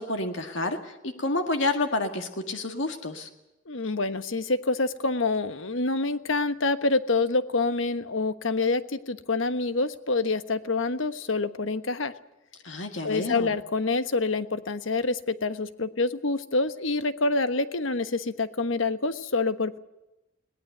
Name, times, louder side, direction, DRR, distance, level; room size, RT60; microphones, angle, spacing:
voice 1, 0.0-3.3 12.6-13.6, left 2 dB, 70° left, 5 dB, 1.9 m, -29 dB
voice 2, 3.7-12.1 13.0-19.8, left 3 dB, 90° left, 11 dB, 1.3 m, -27 dB
21.5 x 18.5 x 8.0 m, 0.96 s
head